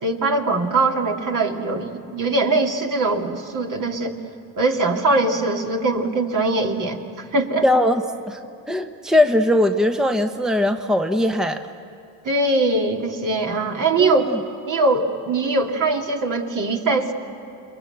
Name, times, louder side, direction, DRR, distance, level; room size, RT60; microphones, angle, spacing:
voice 1, 0.0-4.2 4.6-7.0 7.3-7.6 12.2-14.3 14.7-17.1, right 2 dB, 50° right, 2 dB, 2.7 m, -21 dB
voice 2, 7.6-8.0 8.3-8.4 8.7-11.6 14.0-14.3, left 1 dB, ahead, 7 dB, 1.1 m, -19 dB
28.0 x 22.0 x 8.0 m, 2.5 s
hypercardioid pair, 60°, 41 cm